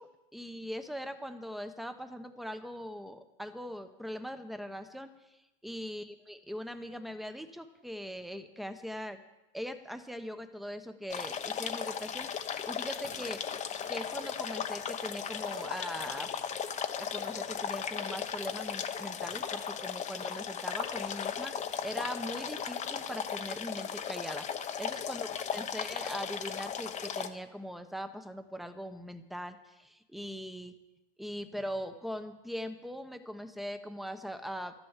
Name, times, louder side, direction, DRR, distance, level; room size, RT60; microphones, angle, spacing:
voice 1, 0.0-5.1 5.6-9.2 9.5-13.4 13.9-16.3 17.0-30.7 31.2-34.7, equal, ahead, 8 dB, 1.0 m, -41 dB
sound 1, 11.1-27.3, left 7 dB, 25° left, 1.0 m, -36 dB
12.5 x 11.5 x 7.3 m, 0.98 s
supercardioid pair, 135°, 29 cm